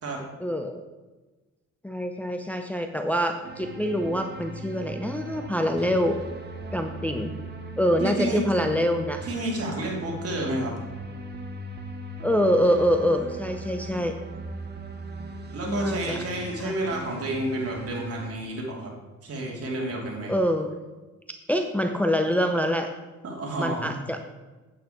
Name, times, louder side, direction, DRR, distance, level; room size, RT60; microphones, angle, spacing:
voice 1, 0.4-0.8 1.8-6.2 6.7-7.3 7.8-9.2 12.2-14.2 15.7-16.2 16.6-16.8 20.3-20.7 21.5-22.9 23.6-24.3, equal, 5° left, 5 dB, 0.7 m, -25 dB
sound 1, 3.4-18.3, right 2 dB, 35° right, 1.6 m, -38 dB
voice 2, 8.0-8.4 9.3-10.8 15.5-18.9 19.2-20.3 23.2-24.0, right 1 dB, 50° right, -1 dB, 3.1 m, -30 dB
8.6 x 8.4 x 4.5 m, 1.2 s
cardioid pair, 90°, 30 cm